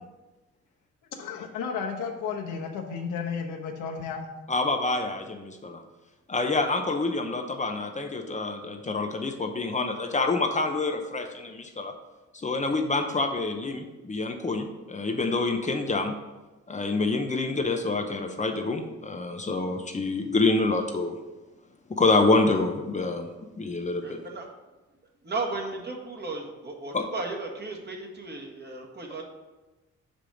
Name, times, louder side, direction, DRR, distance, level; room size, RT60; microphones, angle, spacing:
voice 1, 1.2-4.2, left 6 dB, 85° left, 1 dB, 1.2 m, -33 dB
voice 2, 4.5-5.8 6.3-11.9 12.3-16.1 16.7-21.2 21.9-23.3 23.6-24.2 26.9-27.0, left 3 dB, 25° left, 4 dB, 0.7 m, -27 dB
voice 3, 24.0-24.5 25.2-29.2, right 3 dB, 35° right, 1 dB, 1.6 m, -35 dB
5.5 x 5.1 x 6.2 m, 1.1 s
cardioid pair, 90°, 30 cm